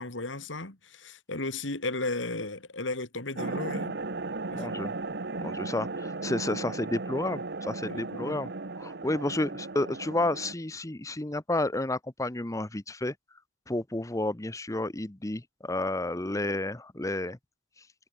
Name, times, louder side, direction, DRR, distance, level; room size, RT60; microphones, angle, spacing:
voice 1, 0.0-4.0 4.5-4.6 6.5-6.6 7.9-8.5, left 2 dB, 90° left, 3.2 m, -35 dB
sound 1, 3.4-10.5, right 3 dB, 60° right, 1.3 m, -36 dB
voice 2, 4.5-4.9 5.4-8.5 8.8-13.1 13.7-17.4, left 2 dB, 15° left, 1.0 m, -31 dB
head